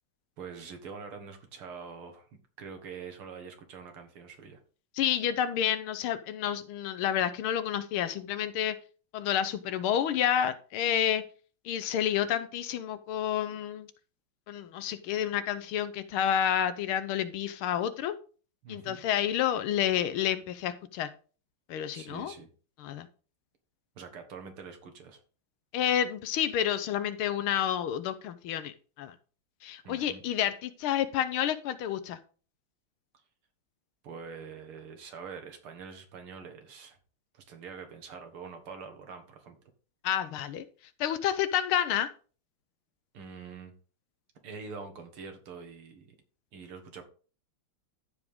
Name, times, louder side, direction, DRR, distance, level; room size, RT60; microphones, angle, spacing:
voice 1, 0.4-4.6 18.6-19.0 21.9-22.5 24.0-25.2 29.8-30.2 34.0-37.0 37.3-39.6 43.1-43.7 44.4-46.2 46.5-47.0, right 5 dB, 85° right, 5 dB, 2.5 m, -45 dB
voice 2, 5.0-8.8 9.1-11.2 11.7-13.9 14.5-18.2 18.7-21.1 21.7-22.3 22.8-23.1 25.7-29.1 29.6-32.2 40.0-40.7 41.0-42.1, left 10 dB, 85° left, 13 dB, 1.7 m, -29 dB
14.0 x 5.0 x 3.7 m, 0.39 s
omnidirectional pair, 2.3 m